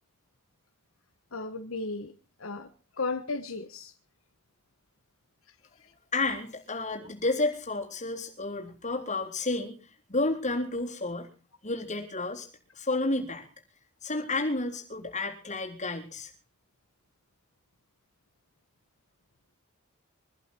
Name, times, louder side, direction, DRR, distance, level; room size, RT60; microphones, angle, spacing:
voice 1, 1.3-2.1 2.4-2.7 3.0-3.9, left 3 dB, 70° left, 1.3 m, -34 dB
voice 2, 6.1-9.8 10.1-11.3 11.6-12.5 12.8-13.4 14.0-16.3, left 2 dB, 35° left, 3.7 m, -31 dB
24.0 x 12.0 x 4.5 m
head